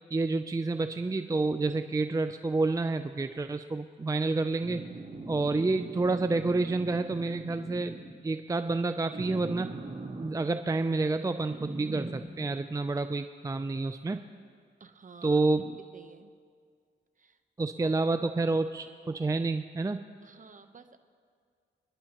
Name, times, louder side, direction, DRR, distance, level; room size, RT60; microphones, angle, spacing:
voice 1, 0.1-4.9 5.3-9.7 10.2-14.2 15.2-15.8 17.6-20.0, right 3 dB, 20° right, 9 dB, 0.4 m, -29 dB
sound 1, 4.6-8.2 9.1-10.3 11.5-12.2, right 3 dB, 60° right, 3.8 m, -41 dB
voice 2, 14.8-15.4 15.9-16.3 17.2-17.4 17.8-17.9 20.2-21.0, right 5 dB, 40° right, 8 dB, 0.9 m, -52 dB
27.5 x 11.0 x 3.0 m, 2.1 s
cardioid pair, 60°, 19 cm